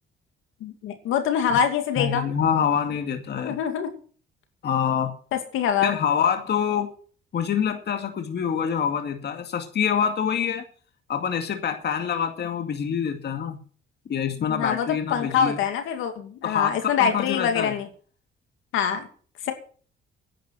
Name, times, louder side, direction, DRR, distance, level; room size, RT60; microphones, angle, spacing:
voice 1, 0.6-2.2 3.4-3.9 5.3-5.9 14.5-17.9 18.7-19.1 19.4-19.5, left 8 dB, 90° left, 6 dB, 2.5 m, -25 dB
voice 2, 2.0-3.6 4.6-5.1 5.8-6.9 7.3-10.6 11.1-13.6 14.1-15.6 16.4-17.8, left 8 dB, 60° left, 6 dB, 2.2 m, -26 dB
11.0 x 9.2 x 7.8 m, 0.43 s
cardioid pair, 90°, 20 cm